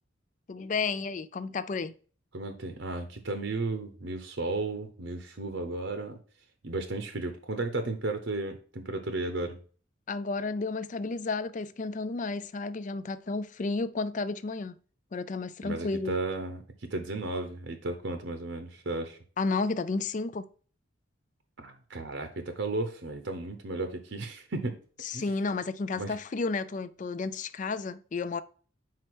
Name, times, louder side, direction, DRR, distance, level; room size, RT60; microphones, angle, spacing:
voice 1, 0.5-2.0 10.1-14.7 15.1-16.2 19.4-20.5 25.0-28.4, left 3 dB, 40° left, 0.4 m, -32 dB
voice 2, 2.3-6.2 6.6-9.6 15.6-16.6 16.9-19.2 21.6-24.8 25.1-25.2 26.0-26.1, right 2 dB, 65° right, 0.8 m, -34 dB
4.8 x 4.4 x 6.0 m
head